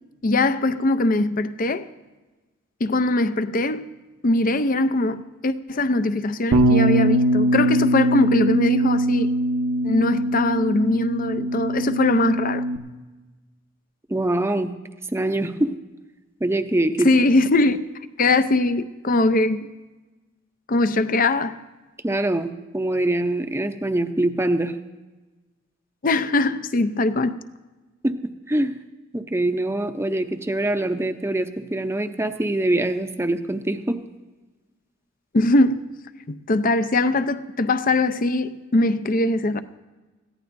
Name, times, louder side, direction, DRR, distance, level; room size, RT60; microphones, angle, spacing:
voice 1, 0.2-1.9 2.8-3.9 4.2-9.3 9.8-12.7 17.0-17.8 18.2-19.7 20.7-21.6 26.0-27.4 35.3-35.8 36.3-39.6, left 2 dB, 45° left, 0.6 m, -21 dB
Bass guitar, 6.5-12.8, right 1 dB, 70° right, 1.2 m, -21 dB
voice 2, 14.1-14.7 15.1-15.7 16.4-17.1 22.0-24.7 28.0-28.1 28.5-28.7 29.1-34.0, right 1 dB, 15° right, 0.7 m, -24 dB
21.0 x 15.0 x 2.6 m
head